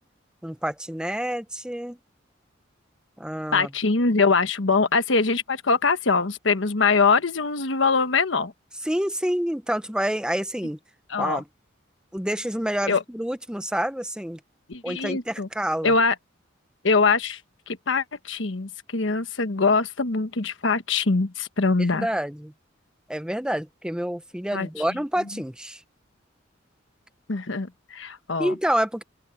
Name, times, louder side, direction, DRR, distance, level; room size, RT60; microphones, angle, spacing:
voice 1, 0.4-2.0 3.2-3.7 8.8-10.8 11.2-11.5 12.1-14.4 14.8-15.9 21.8-22.5 23.1-25.8 28.4-29.0, equal, 5° right, 0.9 m, -28 dB
voice 2, 3.5-8.5 11.1-11.4 12.9-13.0 14.7-15.5 15.8-16.1 16.8-17.4 17.7-22.1 24.5-24.7 27.3-28.5, left 4 dB, 75° left, 1.2 m, -23 dB
open air
head